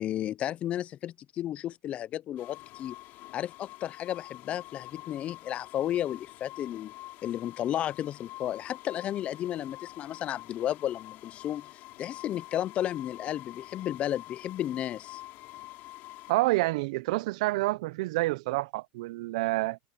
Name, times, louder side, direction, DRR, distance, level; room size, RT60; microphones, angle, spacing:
voice 1, 0.0-3.0 3.3-6.9 7.2-11.7 12.0-15.2, left 11 dB, 30° left, 0.4 m, -33 dB
sound 1, 2.4-16.3, left 18 dB, 50° left, 3.5 m, -47 dB
voice 2, 16.3-19.8, right 20 dB, 75° right, 0.5 m, -28 dB
supercardioid pair, 140°, 4 cm